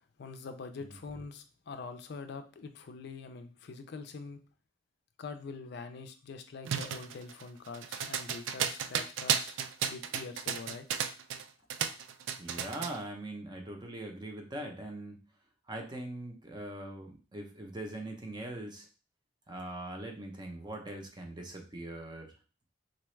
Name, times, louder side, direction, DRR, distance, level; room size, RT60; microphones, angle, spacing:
voice 1, 0.2-4.4 5.2-9.6 9.9-10.9, left 4 dB, 60° left, 8 dB, 0.4 m, -44 dB
sound 1, 6.6-11.4 11.7-13.0, right 8 dB, 80° right, 0.3 m, -33 dB
voice 2, 12.4-15.2 15.7-18.9 19.5-22.3, right 1 dB, 25° right, 3 dB, 0.6 m, -41 dB
3.9 x 2.3 x 3.1 m, 0.34 s
head